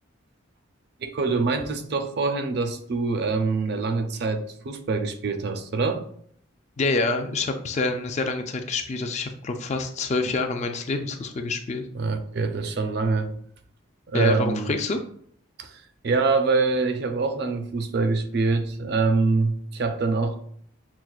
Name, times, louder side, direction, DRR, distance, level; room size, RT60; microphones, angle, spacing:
voice 1, 1.0-6.0 11.9-13.3 14.1-14.7 15.6-20.4, right 3 dB, 50° right, 7 dB, 0.4 m, -25 dB
voice 2, 6.8-11.9 14.1-15.0, left 3 dB, 35° left, 6 dB, 0.3 m, -27 dB
5.7 x 2.3 x 2.3 m, 0.62 s
head